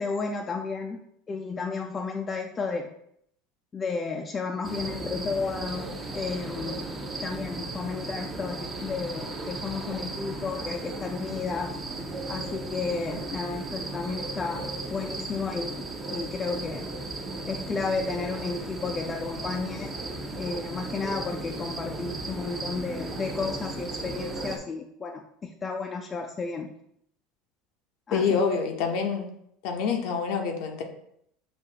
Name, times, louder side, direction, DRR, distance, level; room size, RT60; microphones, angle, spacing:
voice 1, 0.0-2.9 3.7-6.9 7.2-11.8 12.3-14.6 14.9-15.8 16.1-16.9 17.4-19.9 20.4-26.7 28.1-28.4, left 4 dB, 25° left, 2 dB, 0.4 m, -32 dB
sound 1, 4.6-24.6, right 2 dB, 25° right, 0.7 m, -36 dB
voice 2, 28.1-29.3 29.6-30.8, left 6 dB, 70° left, 3 dB, 0.6 m, -26 dB
5.1 x 2.5 x 2.8 m, 0.71 s
supercardioid pair, 100°, 0 cm